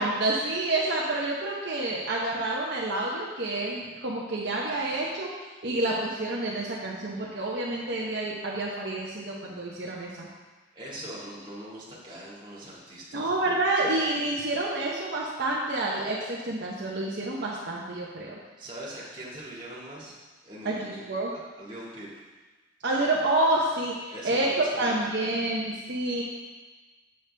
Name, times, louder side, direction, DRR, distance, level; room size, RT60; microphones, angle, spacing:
voice 1, 0.0-5.3 5.6-10.3 13.1-18.4 20.6-21.3 22.8-26.2, right 2 dB, 55° right, -4 dB, 0.8 m, -28 dB
voice 2, 10.7-13.3 18.6-20.2 20.4-22.1 24.1-25.5, right 1 dB, 20° right, -6 dB, 1.8 m, -42 dB
7.8 x 6.6 x 3.3 m, 1.3 s
head